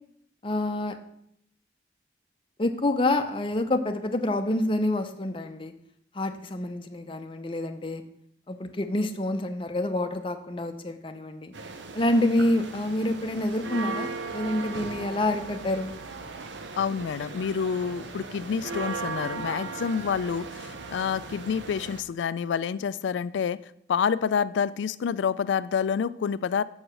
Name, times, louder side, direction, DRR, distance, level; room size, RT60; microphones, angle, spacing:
voice 1, 0.4-1.0 2.6-5.7 6.1-8.0 8.5-11.5 11.9-15.9, left 1 dB, 30° left, 6 dB, 0.6 m, -27 dB
sound 1, 11.5-22.0, right 4 dB, 85° right, 0.8 m, -37 dB
voice 2, 16.8-23.6 23.9-26.6, left 6 dB, 85° left, 16 dB, 0.3 m, -28 dB
7.2 x 4.7 x 6.4 m, 0.71 s
head